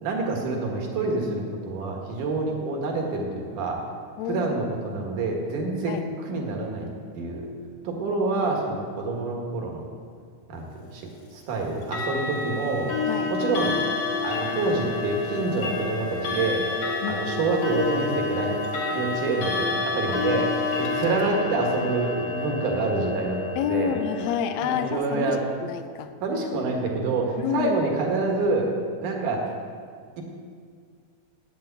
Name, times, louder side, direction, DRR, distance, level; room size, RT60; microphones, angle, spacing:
voice 1, 0.0-3.8 4.3-6.9 7.2-7.5 7.8-9.9 10.5-10.6 10.9-11.0 11.3-12.9 13.3-13.8 14.2-16.7 17.1-18.6 18.9-19.7 19.9-23.9 24.6-25.4 26.2-28.7 29.0-29.5 30.2-30.3, right 3 dB, 65° right, 1 dB, 3.0 m, -27 dB
voice 2, 4.2-4.6 5.9-6.0 13.0-13.3 17.0-17.2 23.5-26.1 27.4-27.8, left 8 dB, 80° left, 8 dB, 1.6 m, -28 dB
Clock, 11.8-24.9, left 4 dB, 55° left, 2.2 m, -29 dB
9.0 x 8.4 x 8.2 m, 2.1 s
omnidirectional pair, 4.0 m